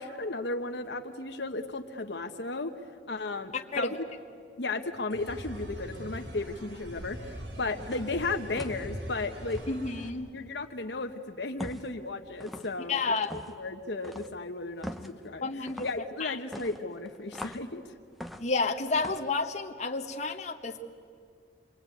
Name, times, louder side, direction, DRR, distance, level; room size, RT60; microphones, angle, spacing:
voice 1, 0.0-2.7 3.1-3.9 4.6-9.7 10.3-17.8, left 3 dB, 70° left, 5 dB, 1.1 m, -35 dB
voice 2, 3.5-3.9 9.7-10.3 12.9-13.3 15.4-15.9 16.2-16.4 18.4-20.8, left 3 dB, 40° left, 2 dB, 1.4 m, -30 dB
sound 1, 5.1-10.1, equal, 80° right, 3.4 m, -42 dB
sound 2, 7.8-8.1 8.6-8.9 9.5-9.7 11.6-11.9 12.4-12.7 13.2-13.6 14.0-14.3 14.8-15.1 15.7-16.0 16.5-17.7 18.2-18.6 19.0-19.3, equal, ahead, 1.0 m, -41 dB
27.0 x 22.5 x 9.2 m, 2.2 s
head